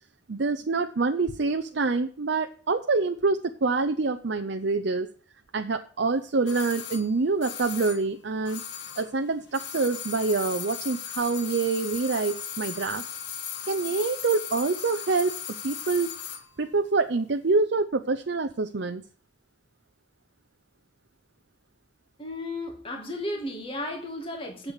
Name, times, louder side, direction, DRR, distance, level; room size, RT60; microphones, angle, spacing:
voice 1, 0.3-5.1 5.5-8.6 9.0-13.0 13.7-15.4 15.6-16.1 16.6-19.0, right 3 dB, 65° right, 0.6 m, -26 dB
sound 1, 6.5-9.2 9.5-16.5 16.7-16.8, left 8 dB, 65° left, 1.4 m, -37 dB
voice 2, 22.2-24.7, left 1 dB, 30° left, 2.1 m, -34 dB
8.1 x 7.5 x 8.1 m
head